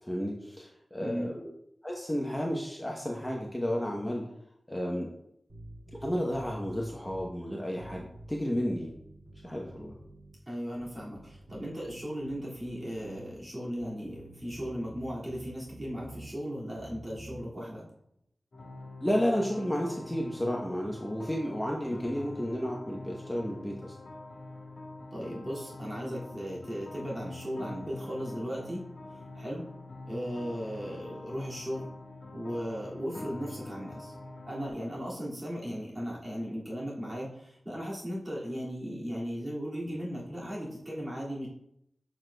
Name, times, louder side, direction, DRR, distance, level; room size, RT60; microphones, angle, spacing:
voice 1, 0.0-1.5 1.8-4.2 4.7-5.1 5.9-8.9 9.4-10.0 19.0-23.9, equal, 10° left, -2 dB, 0.8 m, -32 dB
voice 2, 1.0-1.3 10.5-17.8 25.1-28.9 29.3-29.7 30.1-31.9 32.3-34.2 34.5-41.5, equal, 30° right, -7 dB, 2.1 m, -37 dB
sound 1, 5.5-7.3 7.7-10.4 10.7-13.3 13.7-16.3 16.7-17.4, right 2 dB, 60° right, 2.2 m, -49 dB
sound 2, 18.5-34.7, left 2 dB, 60° left, 1.4 m, -45 dB
7.2 x 6.1 x 2.2 m, 0.77 s
wide cardioid pair, 70°, 0 cm